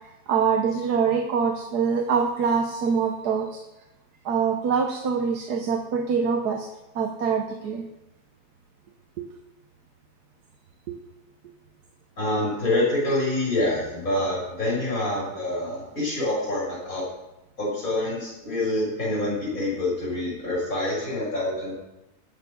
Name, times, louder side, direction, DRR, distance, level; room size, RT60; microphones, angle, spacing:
voice 1, 0.3-3.6 4.2-6.7 6.9-7.9 9.2-9.3 10.9-11.0, right 6 dB, 85° right, 3 dB, 1.6 m, -24 dB
voice 2, 12.2-17.0 17.6-21.7, left 1 dB, 60° left, -6 dB, 6.8 m, -26 dB
19.5 x 7.0 x 5.3 m, 0.94 s
omnidirectional pair, 1.7 m